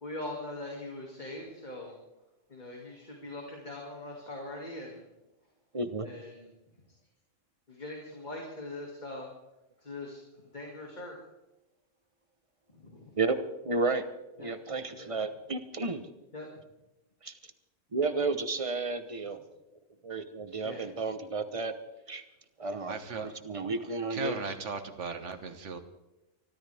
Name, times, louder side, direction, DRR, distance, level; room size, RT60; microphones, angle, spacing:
voice 1, 0.0-2.0 2.5-5.0 6.0-6.5 7.7-9.3 9.8-10.2 10.5-11.1 12.8-13.1 14.4-14.5 14.9-15.1 16.3-16.5 20.6-20.8, left 2 dB, 35° left, -1 dB, 2.6 m, -41 dB
voice 2, 5.7-6.1 13.2-13.4 13.6-14.0 14.4-16.1 17.2-17.4 17.9-19.4 20.0-21.8 22.1-22.2 22.6-23.0 23.2-24.4, right 3 dB, 30° right, 10 dB, 1.0 m, -32 dB
voice 3, 22.8-23.3 24.1-25.8, right 5 dB, 70° right, 9 dB, 1.6 m, -37 dB
24.0 x 14.0 x 3.5 m, 0.97 s
omnidirectional pair, 1.3 m